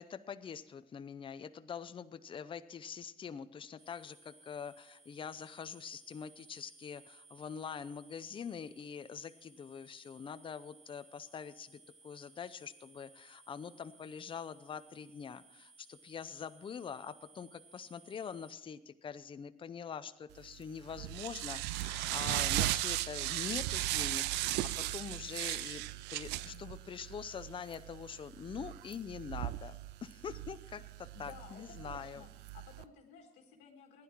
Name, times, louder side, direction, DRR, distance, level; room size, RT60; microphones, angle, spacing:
voice 1, 0.0-25.9 26.1-32.2, left 7 dB, 30° left, 12 dB, 0.6 m, -44 dB
sound 1, 3.8-18.5, right 3 dB, 45° right, 2.7 m, -61 dB
sound 2, 20.4-32.8, right 16 dB, 85° right, 0.5 m, -37 dB
voice 2, 26.4-26.7 31.1-34.0, left 6 dB, 85° left, 2 dB, 1.6 m, -55 dB
15.0 x 10.5 x 4.5 m, 0.95 s
cardioid pair, 110°, 17 cm